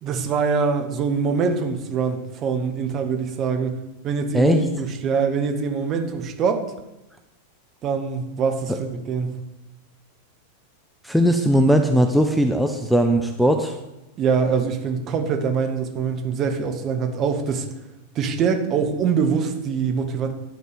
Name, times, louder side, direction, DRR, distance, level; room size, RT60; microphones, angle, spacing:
voice 1, 0.0-6.6 7.8-9.4 14.2-17.7 18.1-20.3, right 5 dB, 30° right, 6 dB, 1.2 m, -24 dB
voice 2, 4.3-4.7 8.7-8.8 11.0-13.8, equal, ahead, 3 dB, 0.6 m, -19 dB
11.5 x 4.5 x 6.6 m, 0.98 s
figure-of-eight pair, 90°, 0 cm